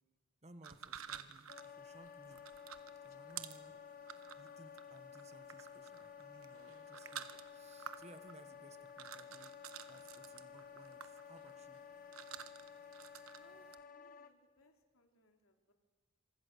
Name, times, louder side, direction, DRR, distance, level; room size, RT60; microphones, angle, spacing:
voice 1, 0.4-2.4 3.0-3.8 4.4-9.6 9.9-11.8, right 2 dB, 30° right, 9 dB, 1.4 m, -60 dB
sound 1, 0.6-13.7, right 8 dB, 75° right, 1.2 m, -53 dB
Wind instrument woodwind instrument, 1.5-14.3, left 7 dB, 40° left, 1.4 m, -54 dB
voice 2, 13.3-15.7, left 1 dB, 80° left, 3 dB, 3.4 m, -69 dB
26.5 x 24.5 x 6.9 m, 1.3 s
head